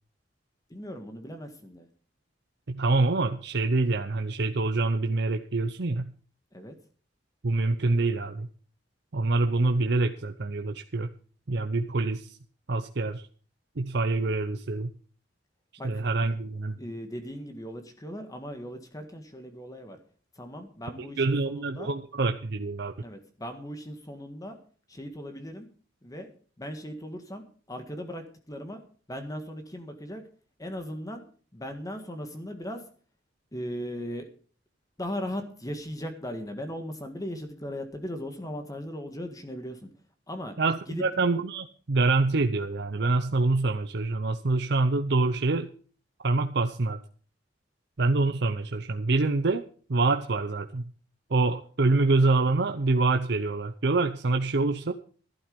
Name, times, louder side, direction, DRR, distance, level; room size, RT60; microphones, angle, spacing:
voice 1, 0.7-1.9 6.5-6.8 15.8-15.9 16.2-16.3 16.8-20.0 20.4-21.9 23.0-24.6 24.9-25.7 26.0-26.3 26.6-28.8 29.1-30.2 30.6-31.2 31.5-32.8 33.5-34.3 35.0-39.9 40.3-40.5 40.9-41.0, equal, 20° left, 6 dB, 1.7 m, -38 dB
voice 2, 2.7-6.1 7.4-8.5 9.1-11.1 11.5-12.4 12.7-13.2 13.8-14.9 15.8-16.8 21.0-22.9 40.6-45.7 46.2-47.0 48.0-49.6 49.9-50.9 51.3-54.9, right 3 dB, 65° right, 6 dB, 0.8 m, -26 dB
12.0 x 12.0 x 5.3 m, 0.43 s
head